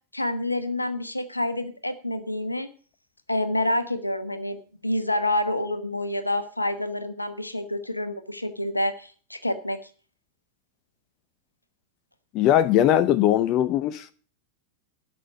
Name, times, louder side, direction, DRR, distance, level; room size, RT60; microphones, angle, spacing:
voice 1, 0.1-2.7 3.3-9.8, left 1 dB, 85° left, 1.2 m, -28 dB
voice 2, 12.3-14.1, left 11 dB, 40° left, 0.7 m, -20 dB
12.0 x 6.1 x 8.2 m
figure-of-eight pair, 90°, 0 cm